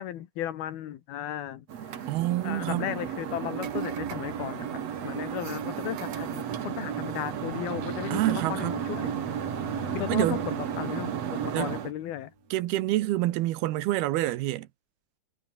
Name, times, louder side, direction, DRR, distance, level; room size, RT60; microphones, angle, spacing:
voice 1, 0.0-2.0 2.4-9.2 9.9-12.3, left 11 dB, 75° left, 3.4 m, -35 dB
sound 1, 1.7-11.9, right 9 dB, 50° right, 2.5 m, -33 dB
voice 2, 2.1-2.9 8.1-8.8 10.1-10.4 11.5-11.7 12.5-14.7, right 15 dB, 80° right, 2.9 m, -27 dB
Bowed string instrument, 7.6-12.0, left 9 dB, 50° left, 2.4 m, -45 dB
omnidirectional pair, 4.6 m